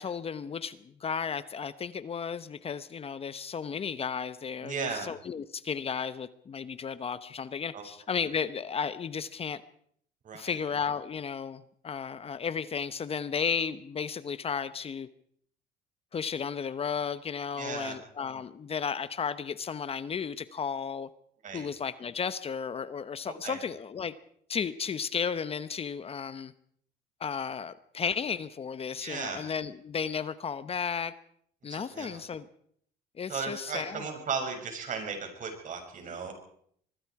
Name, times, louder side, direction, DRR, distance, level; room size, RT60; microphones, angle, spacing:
voice 1, 0.0-9.6 10.3-15.1 16.1-21.1 21.5-24.1 24.5-26.5 27.2-31.1 31.6-32.5 33.2-34.1, left 6 dB, 35° left, 14 dB, 1.0 m, -34 dB
voice 2, 4.6-5.1 7.7-7.9 10.2-10.6 17.5-18.0 21.4-21.7 23.4-23.6 29.0-29.4 31.7-32.2 33.3-36.3, right 5 dB, 50° right, 4 dB, 6.8 m, -36 dB
24.5 x 21.5 x 4.9 m, 0.65 s
cardioid pair, 110°, 17 cm